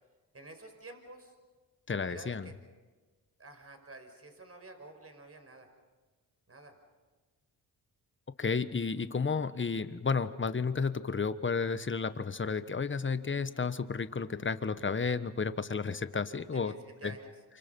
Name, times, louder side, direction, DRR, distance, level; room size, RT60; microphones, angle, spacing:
voice 1, 0.3-1.4 2.1-2.5 3.4-5.7 6.5-6.8 9.0-9.1 16.2-17.3, right 2 dB, 35° right, 5 dB, 5.5 m, -50 dB
voice 2, 1.9-2.5 8.4-16.7 17.0-17.1, left 5 dB, 30° left, 12 dB, 1.3 m, -32 dB
28.5 x 25.5 x 5.4 m, 1.3 s
cardioid pair, 65°, 39 cm